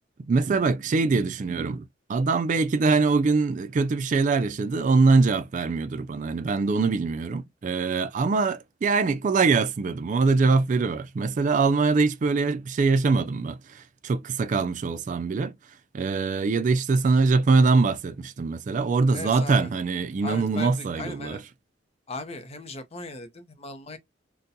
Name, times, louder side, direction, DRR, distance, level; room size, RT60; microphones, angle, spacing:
voice 1, 0.2-1.8 2.1-15.5 15.9-21.4, right 4 dB, 40° right, 0.3 m, -23 dB
voice 2, 19.1-19.7 20.2-21.4 22.1-24.0, left 2 dB, 35° left, 0.6 m, -38 dB
4.0 x 2.2 x 2.6 m
head